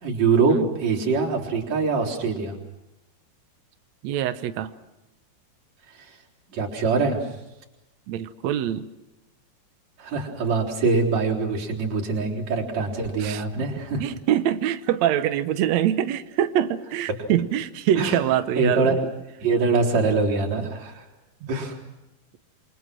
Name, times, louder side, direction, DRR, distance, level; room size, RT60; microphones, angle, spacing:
voice 1, 0.0-2.6 6.5-7.2 10.0-14.0 18.0-18.2 18.6-18.9 19.4-21.0 21.5-21.8, right 4 dB, 45° right, -2 dB, 4.8 m, -23 dB
voice 2, 4.0-4.7 8.1-8.9 13.2-13.4 14.0-19.0 21.4-21.5, right 11 dB, 90° right, 10 dB, 1.5 m, -24 dB
28.5 x 24.5 x 6.2 m, 0.94 s
omnidirectional pair, 4.6 m